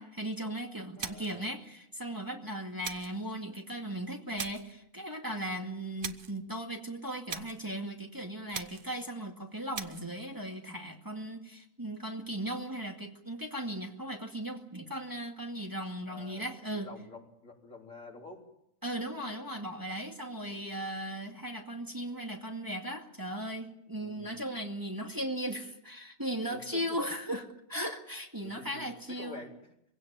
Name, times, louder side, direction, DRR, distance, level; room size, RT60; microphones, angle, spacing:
voice 1, 0.0-16.9 18.8-29.4, right 1 dB, 15° right, 2 dB, 2.2 m, -37 dB
voice 2, 1.0-1.4 16.1-16.5 16.7-18.5 20.5-20.6 24.0-24.4 26.5-26.8 28.4-29.5, left 2 dB, 75° left, 0 dB, 4.2 m, -48 dB
sound 1, 1.0-1.4 2.8-3.2 4.4-4.7 6.0-6.4 7.3-7.7 8.5-9.0 9.7-10.1, right 5 dB, 45° right, 1.2 m, -40 dB
23.5 x 17.0 x 9.0 m, 0.79 s
omnidirectional pair, 1.4 m